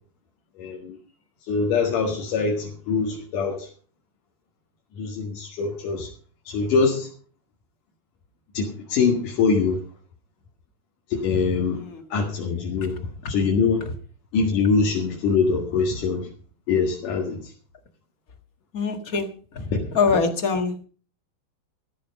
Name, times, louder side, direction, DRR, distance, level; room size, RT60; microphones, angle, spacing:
voice 1, 0.6-1.0 1.5-3.7 5.0-6.1 6.5-7.1 8.5-9.8 11.1-11.8 12.1-13.0 13.3-13.9 14.3-16.3 16.7-17.5 19.7-19.8, left 5 dB, 85° left, -1 dB, 3.4 m, -23 dB
voice 2, 18.7-19.3 19.9-20.8, left 5 dB, 35° left, 6 dB, 1.6 m, -23 dB
14.5 x 11.0 x 5.3 m, 0.41 s
omnidirectional pair, 3.6 m